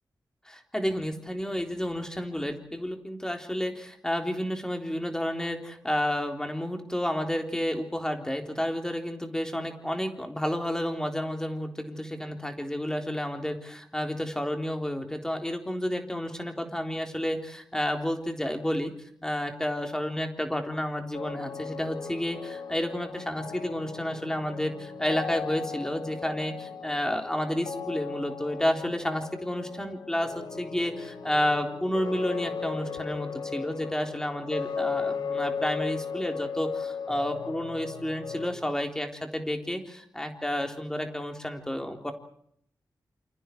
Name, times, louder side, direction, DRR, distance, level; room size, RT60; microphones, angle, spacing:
voice 1, 0.5-18.9 19.2-42.1, equal, 10° left, 4 dB, 3.8 m, -31 dB
sound 1, 21.1-38.6, left 6 dB, 85° left, 4.9 m, -36 dB
28.5 x 27.5 x 4.7 m, 0.67 s
wide cardioid pair, 135°, 7 cm